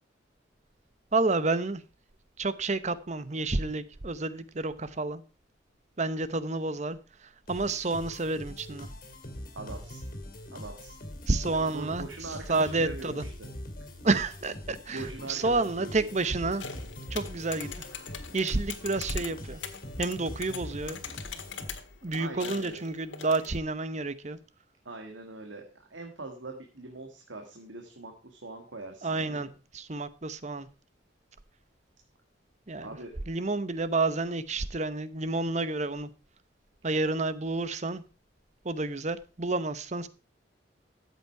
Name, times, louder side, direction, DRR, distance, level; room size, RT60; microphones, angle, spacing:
voice 1, 1.1-1.8 2.4-5.2 6.0-7.0 7.5-8.9 11.3-12.1 12.5-13.2 14.0-16.7 17.1-17.8 18.3-19.6 20.0-21.0 22.0-24.4 29.0-29.5 29.7-30.7 32.7-33.0 33.3-36.1 36.8-38.0 38.6-40.1, right 3 dB, 35° right, 0.8 m, -29 dB
sound 1, 7.5-22.0, left 1 dB, 45° left, 2.5 m, -43 dB
voice 2, 9.5-10.0 10.5-11.0 11.4-13.5 14.9-16.1 22.1-22.8 24.8-29.5 32.8-33.1, right 2 dB, 75° right, 2.0 m, -42 dB
sound 2, 16.6-23.6, left 7 dB, 80° left, 1.7 m, -42 dB
13.5 x 8.3 x 4.6 m
head